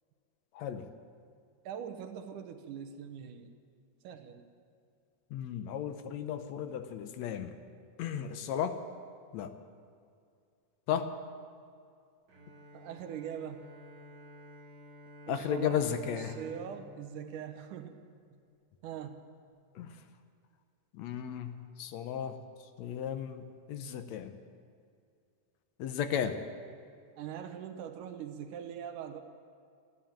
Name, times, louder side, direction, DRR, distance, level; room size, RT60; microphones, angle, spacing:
voice 1, 0.5-0.9 5.3-7.5 8.0-8.8 9.3-9.6 10.9-11.1 15.3-16.4 19.7-20.0 20.9-22.4 22.8-24.4 25.8-26.4, left 8 dB, 70° left, 9 dB, 1.8 m, -35 dB
voice 2, 1.7-3.5 4.0-4.5 12.7-13.7 15.3-15.8 16.1-18.0 18.8-19.3 27.2-29.2, right 8 dB, 85° right, 6 dB, 2.5 m, -42 dB
Bowed string instrument, 12.3-18.5, left 1 dB, 60° right, 2.9 m, -52 dB
14.5 x 11.0 x 8.8 m, 2.4 s
omnidirectional pair, 3.6 m